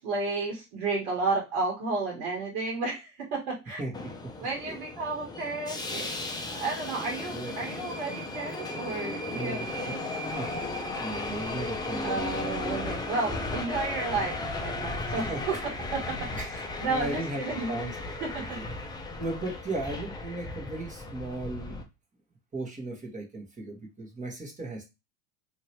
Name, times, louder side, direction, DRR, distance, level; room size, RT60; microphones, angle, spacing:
voice 1, 0.0-3.8 4.4-6.1 6.5-10.0 12.0-15.5 15.9-16.0 16.8-17.7 18.2-18.6, right 3 dB, 65° right, -2 dB, 1.5 m, -32 dB
Subway metro underground, 3.9-21.8, left 2 dB, 10° left, 0.6 m, -35 dB
voice 2, 7.3-7.7 9.3-9.7 10.3-12.6 15.3-15.6 16.3-18.7 19.2-21.8 22.5-24.8, right 2 dB, 20° right, 0 dB, 1.3 m, -37 dB
2.9 x 2.9 x 2.8 m, 0.25 s
hypercardioid pair, 90°, 40 cm